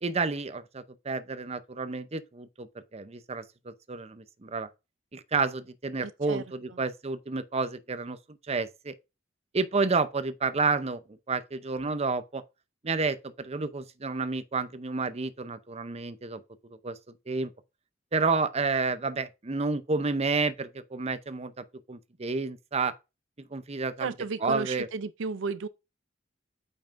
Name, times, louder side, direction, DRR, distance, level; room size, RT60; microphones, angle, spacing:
voice 1, 0.0-4.7 5.1-8.2 8.5-8.9 9.5-11.0 11.3-12.4 12.8-16.4 16.7-17.0 17.3-17.5 18.1-22.9 23.5-24.1 24.4-24.9, right 4 dB, 35° right, 0.7 m, -30 dB
voice 2, 6.0-6.4 24.0-25.7, right 4 dB, 80° right, 0.5 m, -33 dB
8.8 x 5.6 x 2.6 m
head